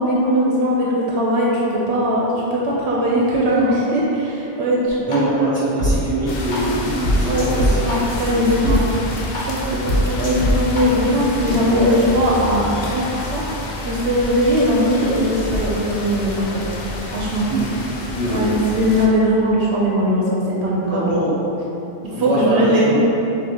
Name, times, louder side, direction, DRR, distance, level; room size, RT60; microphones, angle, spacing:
voice 1, 0.0-5.3 7.2-8.9 9.5-12.6 12.9-13.0 13.3-13.4 13.8-16.6 17.1-17.4 18.3-21.0 22.2-23.0, equal, 70° right, -4 dB, 0.8 m, -19 dB
voice 2, 3.5-3.9 5.0-8.8 11.4-12.0 17.5-17.8 18.1-18.8 20.9-21.4 22.0-23.0, right 1 dB, 5° left, -11 dB, 1.3 m, -25 dB
sound 1, 5.1-5.2 5.8-5.9 6.5-6.6 7.0-8.8 9.3-9.4 9.9-10.8, equal, 90° left, 1.3 m, -20 dB
sound 2, 6.3-19.1, left 1 dB, 60° left, 0.5 m, -29 dB
6.1 x 2.7 x 2.7 m, 3.0 s
omnidirectional pair, 1.2 m